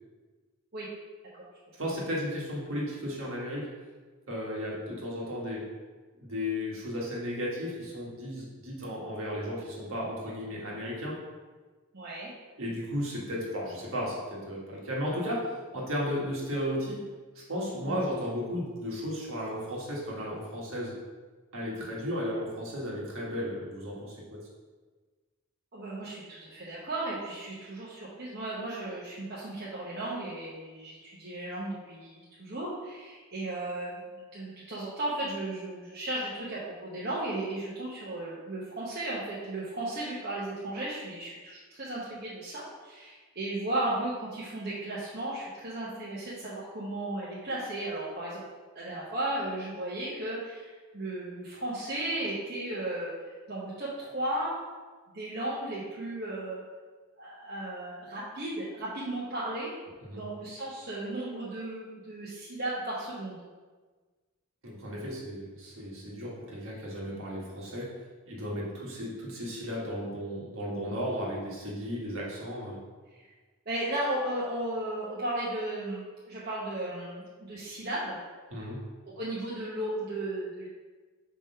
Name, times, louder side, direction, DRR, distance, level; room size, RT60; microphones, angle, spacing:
voice 1, 1.8-3.7 4.3-5.7 6.2-11.2 12.6-17.0 17.3-20.9 21.5-24.4 60.0-60.2 64.6-67.9 68.3-72.8 78.5-78.8, equal, 65° right, -4 dB, 1.6 m, -34 dB
voice 2, 11.9-12.3 17.8-18.0 25.7-34.0 34.3-48.4 48.7-53.1 53.5-54.5 55.1-56.6 57.2-59.7 60.1-63.4 73.7-78.2 79.0-80.7, right 1 dB, 45° right, -8 dB, 1.0 m, -35 dB
4.9 x 3.7 x 5.7 m, 1.4 s
head